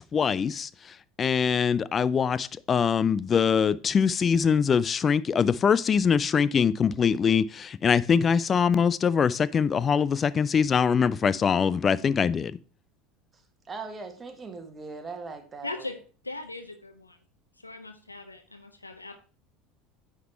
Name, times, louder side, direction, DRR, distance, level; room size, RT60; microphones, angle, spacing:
voice 1, 0.1-0.7 1.2-12.6, left 6 dB, 30° left, 0.4 m, -23 dB
voice 2, 13.7-15.9, right 4 dB, 25° right, 1.4 m, -39 dB
voice 3, 15.6-16.0 16.2-17.2 17.6-19.2, left 2 dB, 90° left, 0.7 m, -39 dB
9.3 x 3.8 x 4.5 m
figure-of-eight pair, 75°, 0 cm